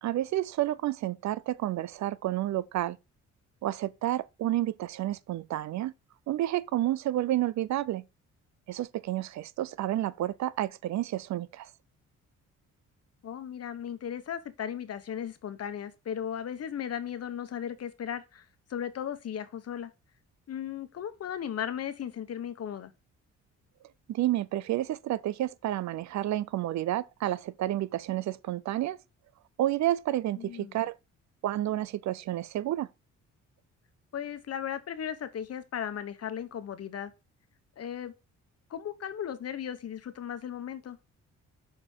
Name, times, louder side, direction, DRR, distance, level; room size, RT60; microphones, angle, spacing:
voice 1, 0.0-3.0 3.6-5.9 6.3-8.0 8.7-11.7 24.1-29.0 29.6-31.0 31.4-32.9, right 14 dB, 65° right, 0.5 m, -30 dB
voice 2, 13.2-18.4 18.7-19.9 20.5-22.9 30.4-30.8 34.1-37.1 37.8-38.1 38.7-41.0, left 9 dB, 55° left, 1.2 m, -36 dB
6.7 x 4.3 x 4.4 m
cardioid pair, 90°, 30 cm